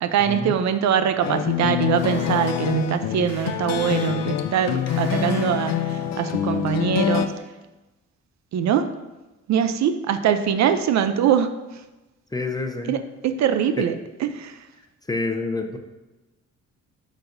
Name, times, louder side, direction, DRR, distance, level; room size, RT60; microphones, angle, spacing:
voice 1, 0.0-7.3 8.5-8.9 9.5-11.8 12.9-14.7, right 8 dB, 65° right, 9 dB, 0.5 m, -23 dB
sound 1, 1.2-7.3, left 9 dB, 60° left, 0.6 m, -25 dB
sound 2, 1.9-6.1, right 1 dB, 85° right, 2.2 m, -42 dB
voice 2, 12.3-13.0 13.8-13.9 15.1-15.8, left 3 dB, 15° left, 4 dB, 0.7 m, -27 dB
11.0 x 4.0 x 2.6 m, 1.1 s
cardioid pair, 90°, 30 cm